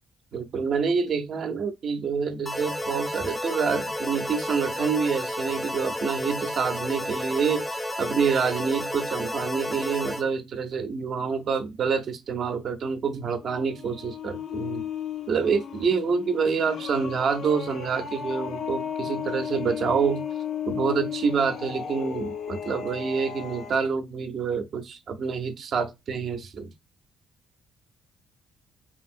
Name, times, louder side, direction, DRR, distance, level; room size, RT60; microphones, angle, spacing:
voice 1, 0.3-14.8 15.3-20.2 20.7-26.7, right 5 dB, 60° right, 0.6 m, -27 dB
sound 1, 2.5-10.2, left 1 dB, 10° left, 0.5 m, -31 dB
sound 2, 13.4-23.9, left 8 dB, 60° left, 0.5 m, -34 dB
2.9 x 2.7 x 2.5 m
cardioid pair, 90°, 0 cm